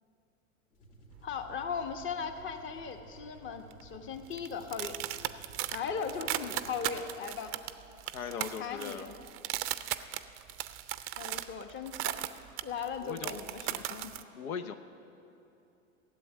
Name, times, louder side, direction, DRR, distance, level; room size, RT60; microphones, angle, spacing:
sound 1, 0.7-7.2, right 1 dB, 60° left, 2.7 m, -56 dB
sound 2, 1.1-2.6 2.8-3.2 3.7-14.2, right 15 dB, 30° right, 0.5 m, -38 dB
voice 1, 1.2-5.0 5.7-7.6 8.2-9.2 11.2-12.3 12.6-14.1, left 6 dB, 30° left, 7 dB, 1.1 m, -38 dB
voice 2, 8.1-9.1 13.0-13.4 14.4-14.7, left 6 dB, 80° left, 9 dB, 0.8 m, -39 dB
14.5 x 7.7 x 9.4 m, 2.8 s
hypercardioid pair, 105°, 41 cm